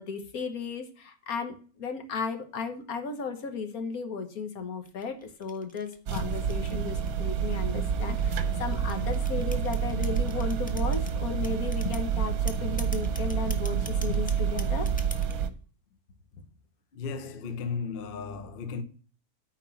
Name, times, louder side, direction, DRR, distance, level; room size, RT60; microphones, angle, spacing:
voice 1, 0.0-14.9, left 5 dB, 70° left, 1.7 m, -35 dB
sound 1, 4.8-7.3 8.0-11.1 11.4-12.1 12.5-15.4, equal, 5° left, 0.8 m, -44 dB
sound 2, 6.1-15.5, right 7 dB, 70° right, 1.2 m, -28 dB
voice 2, 16.9-18.8, left 5 dB, 45° left, 0.9 m, -35 dB
9.4 x 4.6 x 7.0 m
omnidirectional pair, 1.6 m